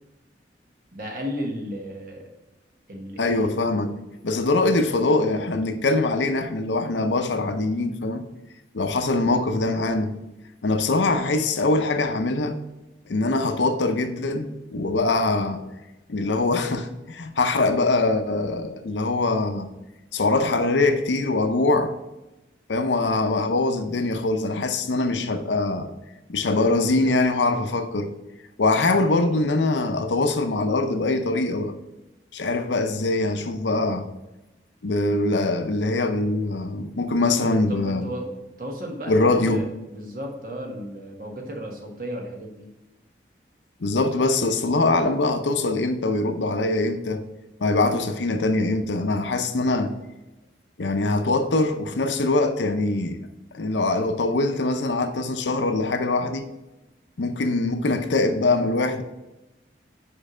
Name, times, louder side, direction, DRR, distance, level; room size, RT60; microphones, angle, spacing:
voice 1, 0.9-2.3 2.9-3.5 37.4-42.7, equal, 50° right, 1.3 m, -34 dB
voice 2, 3.2-3.9 4.2-8.2 8.7-10.1 10.6-12.6 13.1-15.6 16.1-19.7 20.1-21.9 22.7-25.9 26.3-28.1 28.6-31.7 32.3-34.1 34.8-38.1 39.1-39.6 43.8-47.2 47.6-49.9 50.8-53.2 53.5-56.5 57.2-59.0, left 2 dB, 85° left, 0.6 m, -23 dB
5.4 x 4.7 x 4.9 m
head